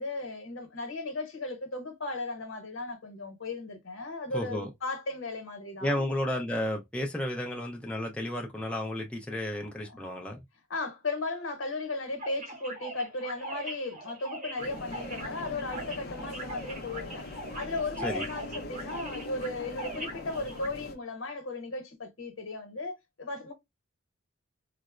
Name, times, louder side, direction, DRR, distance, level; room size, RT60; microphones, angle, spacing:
voice 1, 0.0-6.0 9.8-10.0 10.7-17.3 17.5-23.5, left 2 dB, 70° left, 0.9 m, -36 dB
voice 2, 4.3-4.7 5.8-10.4 18.0-18.2, left 1 dB, 5° left, 0.5 m, -32 dB
sound 1, 12.2-20.7, right 2 dB, 40° right, 0.8 m, -41 dB
sound 2, 14.6-21.0, left 2 dB, 50° left, 0.5 m, -42 dB
3.9 x 2.0 x 2.3 m
head